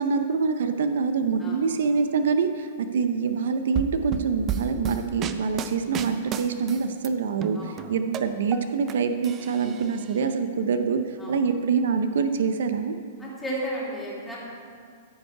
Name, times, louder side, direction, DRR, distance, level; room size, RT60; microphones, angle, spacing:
voice 1, 0.0-13.0, right 5 dB, 75° right, 9 dB, 0.5 m, -25 dB
sound 1, 3.8-7.1 7.4-8.9 9.2-10.1, right 8 dB, 25° right, 0.4 m, -32 dB
voice 2, 13.2-14.4, right 1 dB, 5° left, -6 dB, 2.3 m, -33 dB
14.0 x 5.4 x 4.8 m, 2.2 s
hypercardioid pair, 150°, 0 cm